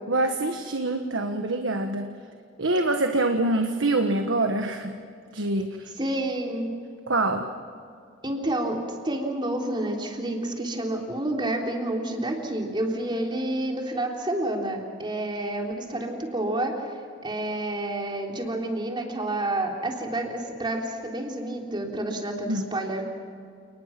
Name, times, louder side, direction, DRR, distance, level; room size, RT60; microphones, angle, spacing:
voice 1, 0.1-2.1 2.6-5.0 5.3-5.9 7.1-7.5 22.5-22.7, right 2 dB, 70° right, 5 dB, 1.4 m, -25 dB
voice 2, 6.0-6.7 8.2-23.0, right 1 dB, 25° right, 1 dB, 3.6 m, -29 dB
30.0 x 20.0 x 6.0 m, 2.4 s
head